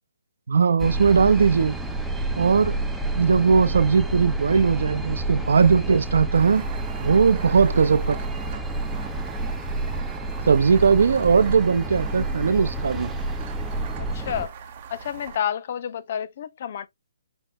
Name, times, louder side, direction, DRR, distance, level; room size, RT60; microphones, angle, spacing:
voice 1, 0.5-1.8 2.4-2.8 3.2-6.6 7.0-8.2 10.5-13.1, right 5 dB, 70° right, 0.6 m, -19 dB
sound 1, 0.8-14.5, right 2 dB, 5° right, 0.5 m, -29 dB
sound 2, 6.3-15.4, right 7 dB, 35° right, 0.9 m, -41 dB
voice 2, 14.0-14.6 14.9-16.9, left 9 dB, 45° left, 0.5 m, -30 dB
5.2 x 2.1 x 3.6 m
hypercardioid pair, 160°, 0 cm